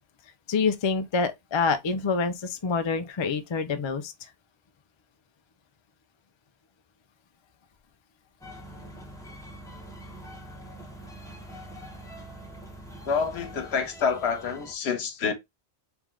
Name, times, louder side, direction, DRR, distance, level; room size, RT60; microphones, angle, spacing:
voice 1, 0.5-4.1, left 4 dB, 45° left, 0.3 m, -26 dB
sound 1, 8.4-14.7, right 1 dB, 5° left, 0.9 m, -44 dB
voice 2, 13.1-15.3, left 6 dB, 75° left, 1.1 m, -27 dB
3.5 x 3.1 x 3.6 m
omnidirectional pair, 1.1 m